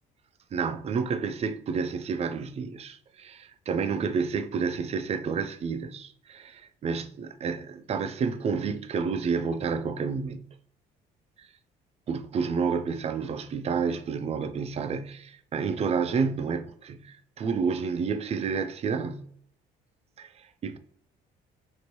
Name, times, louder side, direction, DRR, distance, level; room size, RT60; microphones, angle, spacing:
voice 1, 0.5-10.5 11.4-11.5 12.1-19.3 20.2-20.8, right 5 dB, 40° right, 0.4 m, -30 dB
2.9 x 2.6 x 3.0 m
cardioid pair, 110°, 17 cm